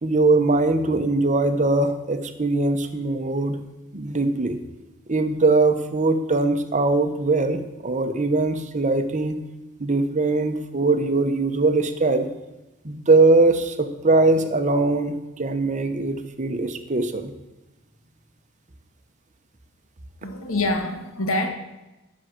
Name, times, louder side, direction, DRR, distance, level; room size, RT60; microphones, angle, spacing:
voice 1, 0.0-3.6 3.9-4.6 5.1-9.4 9.8-12.3 12.8-17.3, right 3 dB, 35° right, 8 dB, 1.0 m, -21 dB
voice 2, 20.2-21.5, left 2 dB, 75° left, 5 dB, 1.6 m, -25 dB
10.5 x 6.3 x 7.7 m, 1.0 s
head